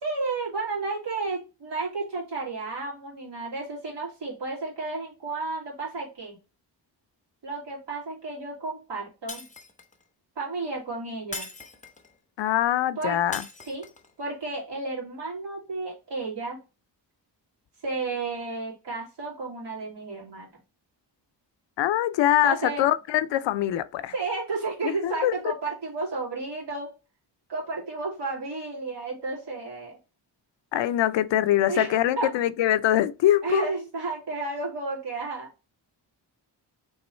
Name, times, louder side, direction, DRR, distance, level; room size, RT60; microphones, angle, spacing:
voice 1, 0.0-6.4 7.4-9.5 10.4-11.5 13.0-13.2 13.7-13.8 14.2-16.6 17.8-20.5 22.4-22.9 24.1-26.9 27.5-30.0 31.7-32.3 33.4-35.5, right 3 dB, 75° right, 2.5 m, -32 dB
Shatter, 9.3-10.0 11.3-12.1 13.3-14.1, left 3 dB, 20° left, 0.6 m, -40 dB
voice 2, 12.4-13.4 21.8-24.1 24.8-25.3 30.7-33.7, left 12 dB, 90° left, 0.5 m, -23 dB
3.6 x 3.1 x 4.3 m
wide cardioid pair, 120°, 42 cm